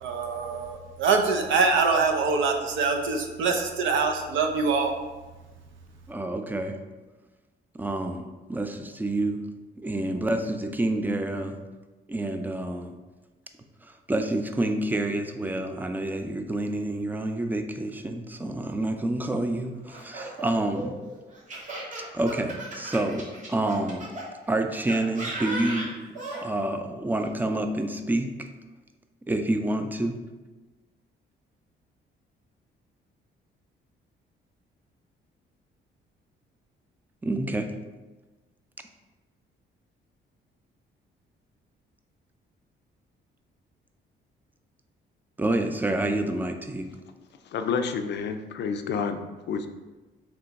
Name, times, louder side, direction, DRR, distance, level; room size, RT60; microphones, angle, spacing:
voice 1, 0.0-4.9, right 4 dB, 75° right, 4 dB, 0.6 m, -24 dB
voice 2, 6.1-6.8 7.7-9.4 9.8-11.6 12.1-12.9 13.8-20.9 22.1-24.1 24.5-25.9 26.4-28.5 29.3-30.2 37.2-37.7 45.4-46.9, right 1 dB, 10° right, 6 dB, 0.4 m, -28 dB
Laughter, 19.9-24.3 24.9-26.4, right 2 dB, 40° right, 1.3 m, -36 dB
voice 3, 47.5-49.2 49.5-49.7, left 6 dB, 60° left, 7 dB, 0.4 m, -29 dB
3.3 x 3.0 x 4.0 m, 1.2 s
cardioid pair, 90°, 20 cm